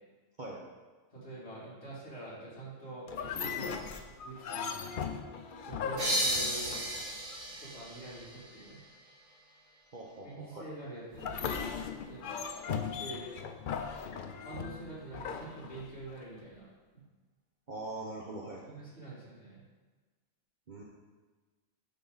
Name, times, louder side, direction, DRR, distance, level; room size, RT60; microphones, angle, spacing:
voice 1, 1.1-4.7 5.6-6.7 7.6-8.8 10.2-11.7 12.0-13.3 14.4-16.7 16.9-17.0 18.6-19.6, right 2 dB, 55° left, -8 dB, 2.6 m, -46 dB
sound 1, 3.1-7.4 11.1-16.2, left 6 dB, 70° left, 0.5 m, -38 dB
sound 2, 6.0-9.4, equal, 70° right, 2.0 m, -34 dB
voice 2, 9.9-10.6 17.7-18.6 20.7-20.8, right 2 dB, 45° right, -2 dB, 0.8 m, -42 dB
10.5 x 3.6 x 3.9 m, 1.3 s
omnidirectional pair, 1.4 m